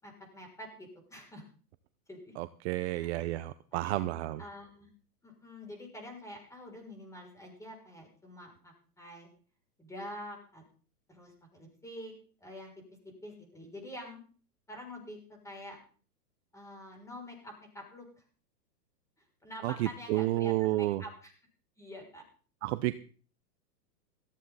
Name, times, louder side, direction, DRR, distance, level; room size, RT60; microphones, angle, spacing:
voice 1, 0.0-1.4 2.1-2.3 2.7-3.1 3.7-4.1 4.4-4.9 5.2-9.3 9.8-10.6 11.1-12.1 12.4-12.7 13.0-14.2 14.7-15.8 16.5-18.1 19.4-21.3 21.8-22.2, left 1 dB, 5° left, 1 dB, 6.6 m, -46 dB
voice 2, 2.4-4.4 19.6-21.0 22.6-22.9, right 17 dB, 40° right, 13 dB, 0.8 m, -31 dB
17.5 x 14.5 x 4.1 m, 0.40 s
hypercardioid pair, 135°, 50 cm